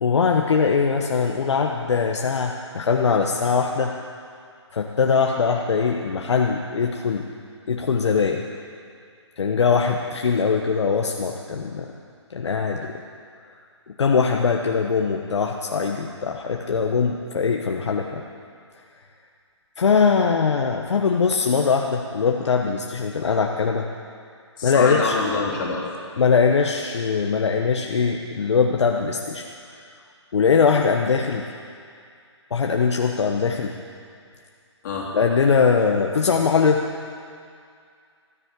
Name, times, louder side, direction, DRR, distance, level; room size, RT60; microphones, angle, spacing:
voice 1, 0.0-3.9 4.7-7.3 7.7-8.4 9.4-11.9 12.3-13.0 14.0-18.3 19.8-23.9 24.6-25.2 26.2-29.4 30.3-31.4 32.5-33.8 35.1-36.8, left 5 dB, 70° left, 2 dB, 1.1 m, -21 dB
voice 2, 24.6-25.8 34.8-35.1, left 4 dB, 40° left, -3 dB, 3.2 m, -25 dB
14.0 x 10.0 x 8.3 m, 2.3 s
hypercardioid pair, 155°, 15 cm